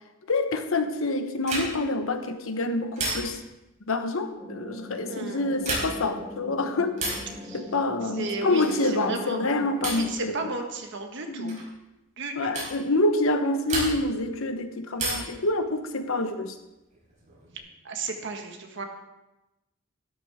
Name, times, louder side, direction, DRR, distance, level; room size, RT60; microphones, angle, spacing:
voice 1, 0.3-3.4 3.9-7.0 7.5-10.3 11.3-11.6 12.3-16.5, left 2 dB, 75° left, 8 dB, 1.1 m, -27 dB
sound 1, 1.4-2.0 3.0-3.6 5.5-6.1 6.9-7.3 8.6-8.9 9.8-10.2 11.5-11.7 12.5-12.8 13.7-14.2 15.0-15.4 16.9-17.6, right 2 dB, 35° right, 5.0 m, -32 dB
sound 2, 4.4-10.1, left 1 dB, 5° right, 2.7 m, -41 dB
voice 2, 5.1-5.5 7.4-7.6 8.1-9.4 9.9-11.5 12.2-12.6 17.8-18.8, right 3 dB, 60° right, 3 dB, 1.6 m, -34 dB
12.5 x 12.5 x 3.6 m, 0.98 s
head